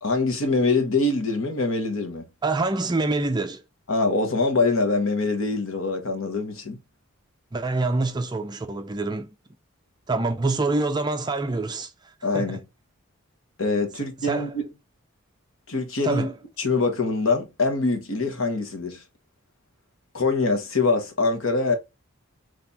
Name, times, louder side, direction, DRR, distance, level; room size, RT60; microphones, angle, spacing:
voice 1, 0.0-2.2 3.9-6.8 12.2-12.6 13.6-14.7 15.7-16.3 16.6-19.0 20.1-21.8, left 3 dB, 70° left, 1.2 m, -24 dB
voice 2, 2.4-3.6 7.5-9.3 10.1-11.9 12.3-12.6 14.2-14.5 16.0-16.3, right 2 dB, 20° right, 0.4 m, -26 dB
4.2 x 3.4 x 3.5 m
head